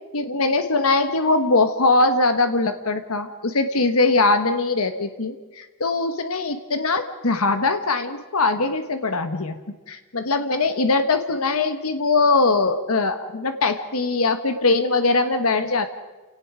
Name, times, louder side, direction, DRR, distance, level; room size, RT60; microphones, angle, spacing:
voice 1, 0.1-9.6 9.9-15.9, left 3 dB, 75° left, 8 dB, 1.2 m, -21 dB
29.5 x 18.0 x 4.9 m, 1.3 s
head